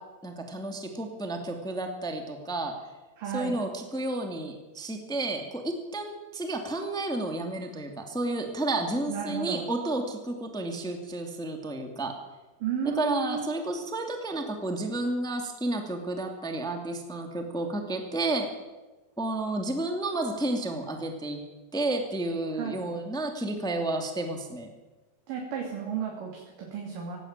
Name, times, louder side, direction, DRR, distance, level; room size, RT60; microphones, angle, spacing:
voice 1, 0.2-2.7 3.3-12.1 12.9-18.5 19.2-21.4 21.7-24.7, right 2 dB, ahead, 4 dB, 1.0 m, -31 dB
voice 2, 3.2-3.6 9.1-9.6 12.6-13.5 22.5-22.8 25.3-27.2, right 7 dB, 55° right, -1 dB, 4.2 m, -33 dB
18.5 x 16.0 x 8.9 m, 1.2 s
omnidirectional pair, 4.9 m